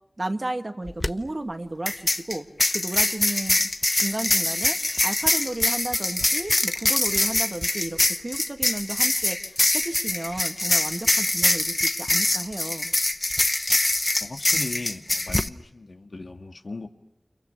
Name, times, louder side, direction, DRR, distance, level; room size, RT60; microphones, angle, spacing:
voice 1, 0.2-3.6 3.9-12.9, right 2 dB, 45° right, 5 dB, 2.1 m, -33 dB
sound 1, 0.9-1.1 1.9-15.5, left 2 dB, 40° left, 1.0 m, -24 dB
voice 2, 14.2-16.9, left 3 dB, 75° left, 3 dB, 2.2 m, -37 dB
30.0 x 28.5 x 6.9 m, 0.81 s
wide cardioid pair, 50°, 0 cm